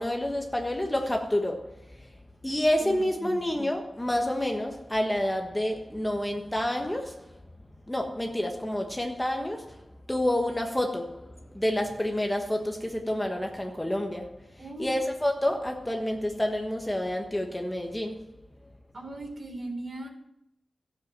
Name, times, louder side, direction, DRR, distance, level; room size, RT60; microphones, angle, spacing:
voice 1, 0.0-1.8 2.4-7.3 7.9-14.4 14.8-18.3, left 1 dB, 10° left, 1.3 m, -29 dB
voice 2, 2.8-3.4 14.6-14.9 18.9-20.1, right 2 dB, 50° right, 3.5 m, -38 dB
14.0 x 7.9 x 7.5 m
wide cardioid pair, 120°, 0 cm